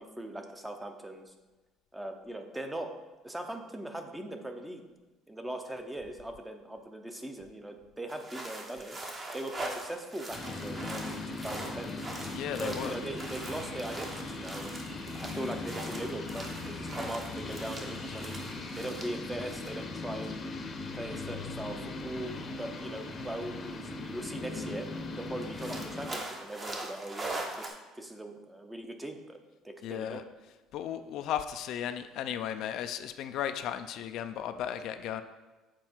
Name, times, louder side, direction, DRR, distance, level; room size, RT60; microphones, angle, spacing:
voice 1, 0.0-1.3 1.9-2.9 3.2-4.8 5.3-9.0 9.3-12.0 12.6-14.8 15.2-18.4 18.7-20.4 20.9-24.9 25.2-29.4 29.6-30.2, right 1 dB, 10° right, 5 dB, 0.7 m, -40 dB
sound 1, 8.1-20.0 20.2-20.3 21.4-21.5 23.7-23.8 24.1-24.2 24.5-24.6 25.4-27.7, right 2 dB, 30° right, 1.0 m, -42 dB
sound 2, 10.3-26.1, left 3 dB, 30° left, 0.8 m, -39 dB
sound 3, 11.9-18.8, right 2 dB, 65° right, 1.7 m, -56 dB
voice 2, 12.3-12.9 29.8-30.2 30.7-35.2, left 10 dB, 65° left, 9 dB, 0.4 m, -35 dB
7.5 x 4.5 x 4.6 m, 1.2 s
cardioid pair, 130°, 0 cm